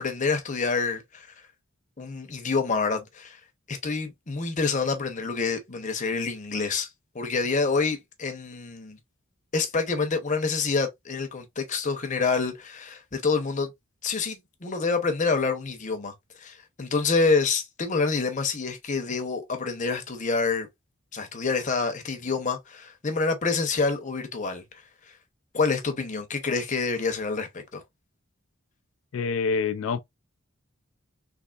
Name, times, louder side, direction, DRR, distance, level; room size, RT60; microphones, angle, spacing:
voice 1, 0.0-1.5 2.0-3.4 3.7-6.9 7.1-9.0 9.5-13.7 14.0-20.7 21.1-25.2 25.5-27.8, left 4 dB, 35° left, 0.8 m, -27 dB
voice 2, 29.1-30.0, left 5 dB, 70° left, 0.4 m, -26 dB
3.4 x 3.3 x 2.4 m
head